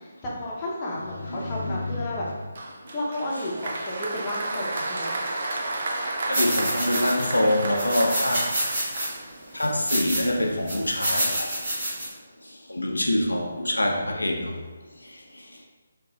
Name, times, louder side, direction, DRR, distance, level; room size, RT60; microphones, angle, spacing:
voice 1, 0.0-2.3 2.9-5.3, left 1 dB, 15° left, 0.8 m, -32 dB
voice 2, 1.3-1.8 6.3-8.5 9.5-11.5 12.7-14.6, left 1 dB, 75° left, 0.4 m, -25 dB
Applause, 2.6-9.7, right 2 dB, 45° right, 0.5 m, -32 dB
sound 1, 6.3-7.4 7.8-9.1 9.6-10.3 10.7-12.1, right 1 dB, 25° right, 1.3 m, -28 dB
5.9 x 2.4 x 2.4 m
figure-of-eight pair, 145°, 0 cm